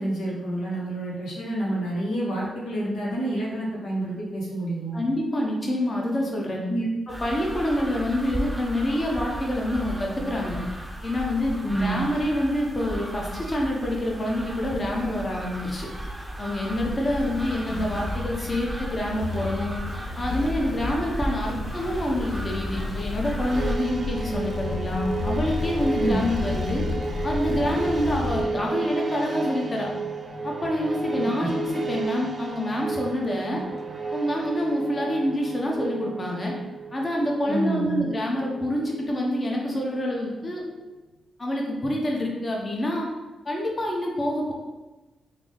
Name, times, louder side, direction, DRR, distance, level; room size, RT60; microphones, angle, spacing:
voice 1, 0.0-5.0 6.7-6.9 11.6-12.0 25.9-26.3 31.1-31.5 37.5-38.0, right 1 dB, 85° left, -5 dB, 0.8 m, -28 dB
voice 2, 4.9-6.6 7.2-10.6 11.0-15.9 16.4-19.7 20.2-26.8 27.2-29.9 30.4-33.6 34.1-36.5 36.9-40.6 41.4-43.1 43.4-44.5, left 1 dB, 40° left, -2 dB, 0.9 m, -27 dB
sound 1, 7.1-23.8, right 1 dB, 15° right, 0.6 m, -35 dB
sound 2, 16.7-28.4, left 4 dB, 70° left, 0.3 m, -32 dB
sound 3, 23.5-40.2 40.5-40.6, right 4 dB, 55° right, 0.4 m, -33 dB
3.4 x 2.1 x 3.8 m, 1.1 s
supercardioid pair, 45°, 0 cm